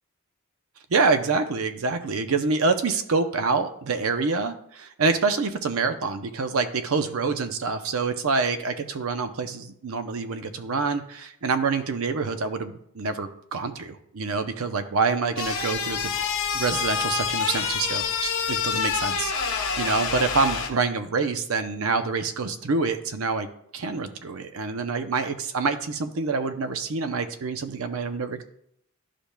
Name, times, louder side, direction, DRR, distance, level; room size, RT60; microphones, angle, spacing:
voice 1, 0.9-16.1 16.5-23.5 23.7-28.4, right 4 dB, 70° right, 9 dB, 0.6 m, -26 dB
sound 1, 15.4-20.7, left 6 dB, 65° left, 1.0 m, -27 dB
11.5 x 5.1 x 2.2 m, 0.72 s
head